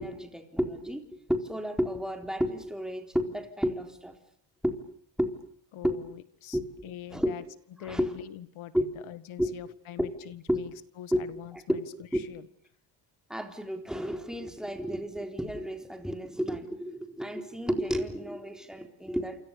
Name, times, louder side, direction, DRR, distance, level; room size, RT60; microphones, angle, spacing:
voice 1, 0.0-4.2 4.6-4.8 5.2-5.4 5.8-6.0 6.5-6.7 7.1-7.3 7.8-8.1 8.7-8.8 9.4-9.5 10.0-10.1 10.5-10.6 11.1-11.2 13.3-19.4, equal, ahead, 5 dB, 4.0 m, -31 dB
voice 2, 5.7-7.4 7.7-10.7 11.0-11.9 12.1-12.5, left 12 dB, 85° left, 13 dB, 2.0 m, -44 dB
28.5 x 26.5 x 6.9 m, 0.64 s
cardioid pair, 105°, 47 cm